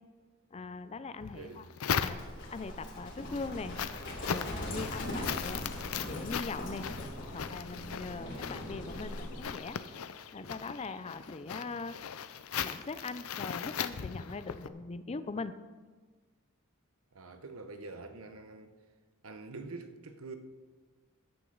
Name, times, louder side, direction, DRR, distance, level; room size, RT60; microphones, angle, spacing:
voice 1, 0.5-1.6 2.0-2.2 2.5-3.8 4.3-5.7 6.1-6.9 7.3-9.8 10.3-12.0 12.6-15.6, left 3 dB, 30° left, 0.5 m, -41 dB
sound 1, 1.2-2.6 3.1-14.7, left 7 dB, 80° left, 0.6 m, -38 dB
voice 2, 1.3-1.7 17.1-18.7 19.2-20.4, right 3 dB, 75° right, 1.0 m, -45 dB
Livestock farm animals working animals, 2.1-9.4, left 1 dB, 60° left, 2.9 m, -40 dB
14.0 x 9.8 x 4.0 m
head